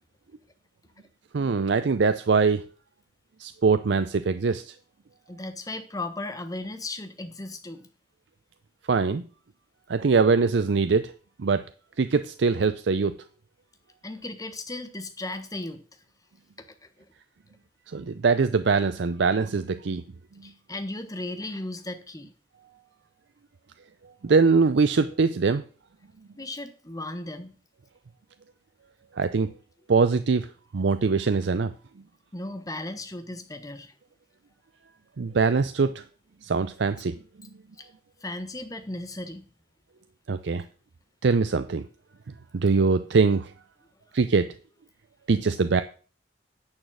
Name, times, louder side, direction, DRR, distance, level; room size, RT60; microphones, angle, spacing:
voice 1, 1.3-2.6 3.4-4.7 8.9-9.2 9.9-11.1 11.4-11.6 12.0-13.1 17.9-20.0 24.2-25.6 29.1-29.5 29.9-30.5 30.7-31.7 35.2-36.0 36.4-37.2 40.3-40.6 41.2-41.9 42.5-43.5 44.1-44.5 45.3-45.8, right 4 dB, 70° right, 11 dB, 0.5 m, -22 dB
voice 2, 5.3-7.9 14.0-15.8 17.0-17.1 20.4-22.3 26.3-27.5 32.3-33.9 37.8-37.9 38.2-39.4, left 2 dB, 20° left, 8 dB, 1.1 m, -36 dB
9.7 x 6.4 x 6.2 m, 0.40 s
head